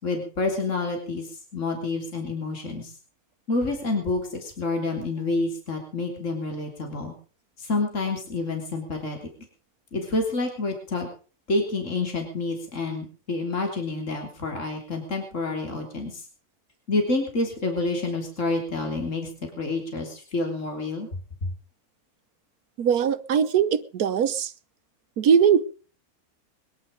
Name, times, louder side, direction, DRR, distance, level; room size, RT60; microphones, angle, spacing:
voice 1, 0.0-2.9 3.5-7.1 7.6-9.2 9.9-11.1 11.5-16.2 16.9-21.1, left 3 dB, 55° left, 3 dB, 3.6 m, -28 dB
voice 2, 22.8-24.5 25.2-25.6, right 7 dB, 90° right, 13 dB, 1.5 m, -21 dB
22.0 x 11.0 x 5.1 m, 0.39 s
omnidirectional pair, 1.5 m